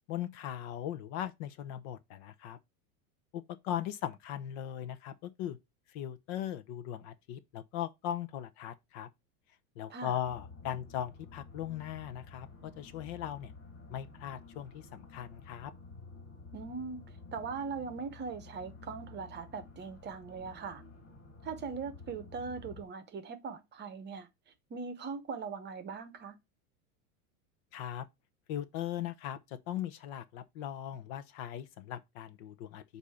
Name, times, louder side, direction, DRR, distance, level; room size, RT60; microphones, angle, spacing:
voice 1, 0.1-2.6 3.3-5.6 5.9-9.1 9.8-13.5 13.9-15.7 27.7-28.1 28.5-32.8, left 11 dB, 50° left, 0.8 m, -39 dB
sound 1, 10.2-22.8, left 3 dB, 30° left, 3.1 m, -51 dB
voice 2, 16.5-20.8 21.4-24.3 24.7-26.4, right 5 dB, 25° right, 0.9 m, -40 dB
8.1 x 2.8 x 5.6 m
supercardioid pair, 125°, 43 cm